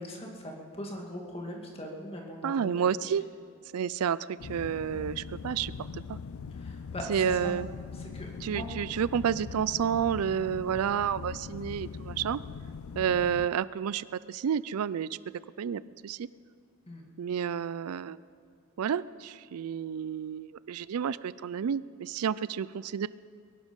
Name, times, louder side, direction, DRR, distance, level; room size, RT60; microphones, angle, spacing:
voice 1, 0.0-2.9 6.5-7.6 7.9-8.6 16.9-17.1, equal, 25° left, 0 dB, 2.1 m, -40 dB
voice 2, 2.4-3.2 3.7-6.2 7.1-7.7 8.4-12.4 13.0-15.1 15.6-16.3 17.2-18.2 18.8-23.1, right 8 dB, 80° right, 18 dB, 0.4 m, -30 dB
sound 1, 4.4-13.5, left 5 dB, 70° left, 0.4 m, -41 dB
22.0 x 11.5 x 5.3 m, 2.1 s
head